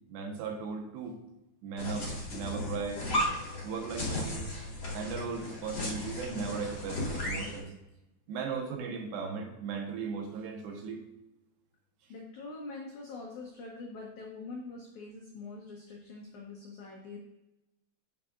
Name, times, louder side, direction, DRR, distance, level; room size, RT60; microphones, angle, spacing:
voice 1, 0.1-1.2 1.6-3.0 3.6-4.5 4.9-7.7 8.3-11.0, right 5 dB, 80° right, 3 dB, 3.2 m, -37 dB
sound 1, 1.8-7.6, left 1 dB, 35° left, 2.7 m, -35 dB
voice 2, 12.1-17.2, left 3 dB, 85° left, -1 dB, 1.6 m, -44 dB
9.5 x 7.5 x 2.5 m, 0.99 s
omnidirectional pair, 5.0 m